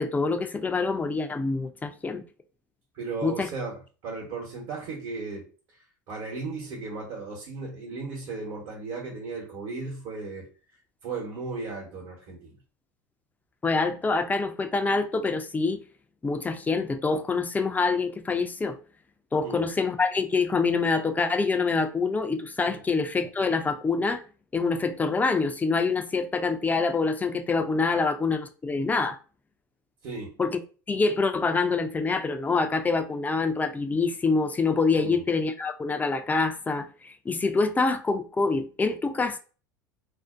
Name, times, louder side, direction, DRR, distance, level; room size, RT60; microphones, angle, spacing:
voice 1, 0.0-2.2 3.2-3.5 13.6-15.8 16.2-18.8 19.3-24.2 24.5-29.2 30.4-30.6 30.9-39.4, left 4 dB, 15° left, 0.4 m, -26 dB
voice 2, 2.9-5.4 6.1-10.5 11.0-12.5 19.4-19.7 22.6-22.8 27.9-28.1 30.0-30.4 34.9-35.2, right 4 dB, 60° right, 1.0 m, -36 dB
2.5 x 2.1 x 2.4 m
hypercardioid pair, 85°, 10 cm